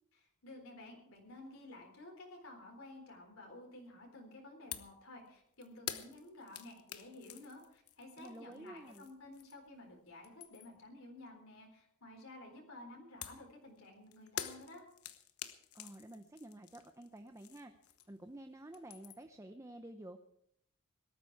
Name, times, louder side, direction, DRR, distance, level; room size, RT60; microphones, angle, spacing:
voice 1, 0.4-14.8, left 2 dB, 70° left, 1 dB, 4.0 m, -53 dB
sound 1, 4.7-5.0 5.3-9.7 10.1-10.9 13.2-18.3 18.6-19.4, left 10 dB, 90° left, 1.1 m, -48 dB
voice 2, 8.2-9.1 15.7-17.7 18.1-20.2, right 1 dB, 15° right, 7 dB, 0.7 m, -51 dB
18.5 x 13.0 x 4.7 m, 0.71 s
head